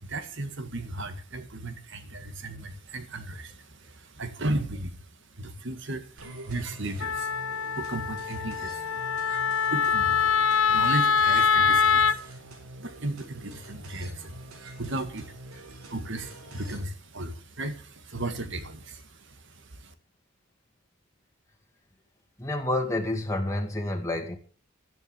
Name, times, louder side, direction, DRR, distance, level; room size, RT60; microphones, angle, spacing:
voice 1, 0.0-5.0 5.4-7.3 7.7-8.9 9.3-12.2 12.8-19.9, right 2 dB, 60° right, 9 dB, 2.0 m, -35 dB
sound 1, 6.2-16.8, right 1 dB, 85° right, 3.7 m, -46 dB
Wind instrument woodwind instrument, 7.0-12.2, left 6 dB, 70° left, 0.8 m, -24 dB
voice 2, 22.4-24.4, left 1 dB, 15° left, 2 dB, 2.1 m, -29 dB
12.5 x 10.5 x 7.1 m, 0.40 s
head